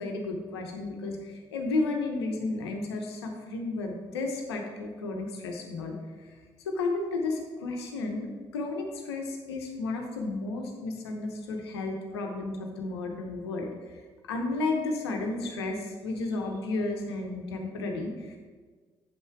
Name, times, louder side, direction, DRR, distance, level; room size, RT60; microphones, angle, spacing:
voice 1, 0.0-5.9 6.2-6.3 6.6-14.0 14.3-18.4, left 3 dB, 90° left, 2 dB, 0.9 m, -33 dB
7.6 x 5.6 x 4.5 m, 1.5 s
hypercardioid pair, 45°, 13 cm